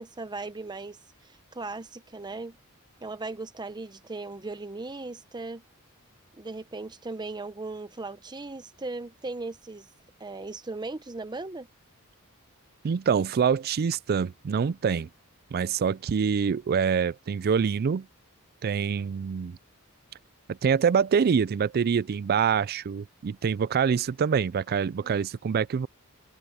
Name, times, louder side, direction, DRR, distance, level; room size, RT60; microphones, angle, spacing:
voice 1, 0.0-2.6 3.0-5.6 6.3-9.9 10.2-11.7 25.0-25.2, right 3 dB, 20° right, 0.7 m, -38 dB
voice 2, 12.8-15.1 15.5-18.1 18.6-19.6 20.5-25.9, right 6 dB, 45° right, 0.4 m, -25 dB
head